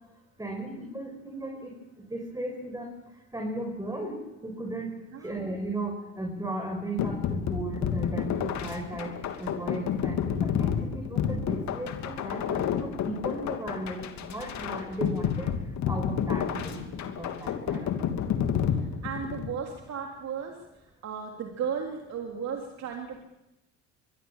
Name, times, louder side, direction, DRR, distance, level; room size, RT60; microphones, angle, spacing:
voice 1, 0.4-1.7 2.1-2.9 3.3-4.2 4.4-4.9 5.2-9.1 9.4-15.5 15.8-17.9, right 1 dB, 10° right, 1 dB, 6.4 m, -36 dB
sound 1, 7.0-19.5, left 8 dB, 50° left, 2.9 m, -30 dB
voice 2, 17.6-17.9 18.7-23.2, right 7 dB, 50° right, 2 dB, 3.4 m, -36 dB
24.0 x 23.0 x 7.5 m, 0.93 s
hypercardioid pair, 60°, 35 cm